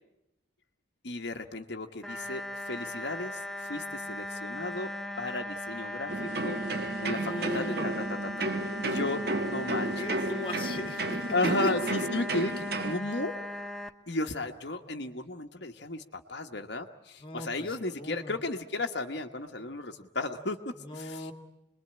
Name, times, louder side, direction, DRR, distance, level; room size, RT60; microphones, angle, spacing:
voice 1, 1.0-4.9 5.2-6.6 7.0-8.0 8.4-8.5 8.8-10.1 11.3-13.3 14.1-21.3, left 2 dB, 55° left, 4 dB, 1.2 m, -34 dB
sound 1, 2.0-13.9, left 1 dB, ahead, 1.0 m, -38 dB
sound 2, 6.1-13.0, right 2 dB, 50° right, 1.3 m, -33 dB
voice 2, 7.1-7.9 10.0-11.3 11.6-11.9 17.2-18.4 20.8-21.3, equal, 25° left, 6 dB, 1.6 m, -38 dB
26.5 x 21.5 x 8.8 m, 0.90 s
head